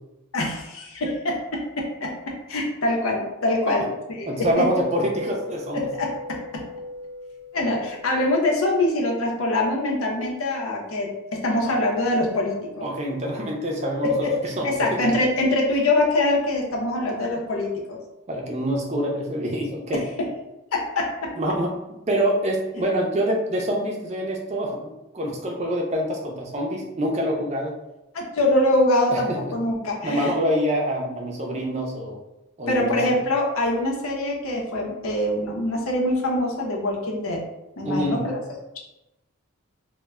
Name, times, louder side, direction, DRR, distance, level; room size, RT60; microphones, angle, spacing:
voice 1, 0.3-2.1 2.5-4.7 5.7-6.6 7.5-12.9 14.0-14.3 14.6-18.0 20.2-20.3 20.7-21.3 28.1-30.3 32.7-37.4 37.8-38.4, left 1 dB, 80° left, -1 dB, 0.6 m, -24 dB
voice 2, 4.3-5.9 11.5-11.6 12.8-14.3 14.6-15.1 18.3-20.0 21.4-21.8 22.1-27.7 29.1-29.4 30.0-32.2 32.6-33.0 37.8-38.2, equal, 30° right, -1 dB, 0.4 m, -26 dB
sound 1, 4.5-8.9, left 2 dB, 15° left, 0.8 m, -37 dB
2.1 x 2.1 x 3.4 m, 0.94 s
head